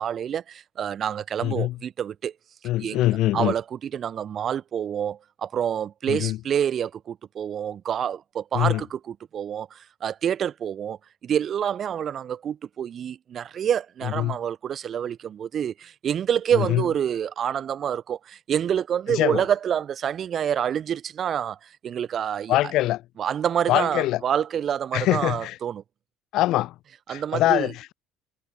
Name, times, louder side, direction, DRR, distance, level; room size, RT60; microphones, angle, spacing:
voice 1, 0.0-2.3 2.8-3.1 3.3-11.0 11.2-22.7 23.2-25.8 27.1-27.7, right 9 dB, 40° right, 1.0 m, -27 dB
voice 2, 1.4-1.8 2.6-3.5 6.1-6.4 8.5-8.8 14.2-14.4 16.5-16.8 19.1-19.4 22.5-23.0 23.7-24.2 24.9-25.6 26.3-26.7 27.1-27.9, left 16 dB, 55° left, 0.4 m, -23 dB
figure-of-eight pair, 55°, 0 cm